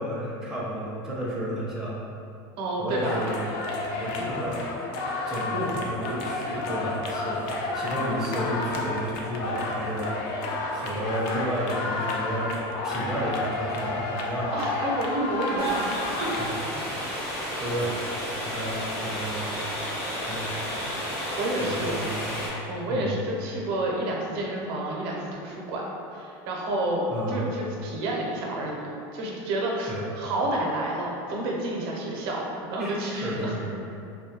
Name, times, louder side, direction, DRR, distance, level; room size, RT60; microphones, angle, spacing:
voice 1, 0.0-2.0 2.8-3.5 4.0-4.6 5.3-10.2 10.7-12.5 12.8-14.6 16.2-16.5 17.5-18.0 18.5-19.5 20.3-20.5 21.6-22.4 22.9-23.2 27.1-27.4 29.9-30.0 32.8-33.8, equal, 5° right, -7 dB, 0.4 m, -32 dB
voice 2, 2.6-3.3 14.5-15.9 16.2-16.3 17.4-17.6 21.4-22.0 22.7-25.8 26.1-27.0 27.3-28.8 29.1-33.5, right 1 dB, 75° right, -2 dB, 0.6 m, -29 dB
sound 1, 3.0-16.5, left 2 dB, 60° left, 0.4 m, -31 dB
sound 2, 15.6-22.5, equal, 90° left, 1.1 m, -32 dB
2.3 x 2.1 x 2.8 m, 2.6 s
supercardioid pair, 120°, 12 cm